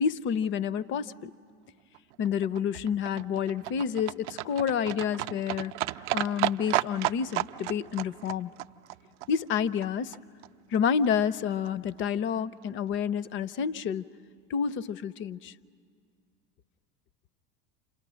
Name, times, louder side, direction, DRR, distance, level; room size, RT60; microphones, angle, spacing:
voice 1, 0.0-1.3 2.2-5.7 6.1-8.5 9.3-10.2 10.7-14.0 14.5-15.5, left 7 dB, 25° left, 20 dB, 0.6 m, -29 dB
Livestock farm animals working animals, 1.9-10.2 10.4-10.5 10.7-10.8 11.0-11.1 11.4-11.5 11.7-11.8 12.0-12.1 12.3-12.4 12.6-12.7, right 17 dB, 50° right, 0.6 m, -34 dB
30.0 x 27.5 x 6.2 m, 2.1 s
figure-of-eight pair, 80°, 44 cm